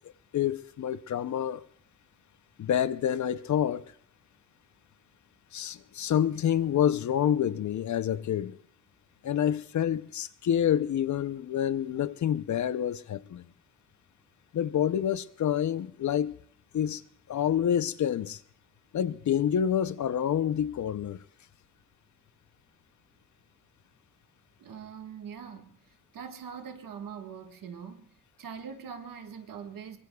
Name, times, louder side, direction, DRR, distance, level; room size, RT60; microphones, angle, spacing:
voice 1, 0.3-1.7 2.6-3.8 5.5-8.6 9.2-13.4 14.5-16.3 16.7-17.0 17.3-18.4 18.9-21.2, left 9 dB, 60° left, 0.6 m, -28 dB
voice 2, 24.6-25.7 26.1-28.0 28.4-30.0, right 7 dB, 90° right, 1.6 m, -42 dB
23.5 x 22.5 x 2.3 m
wide cardioid pair, 130°, 32 cm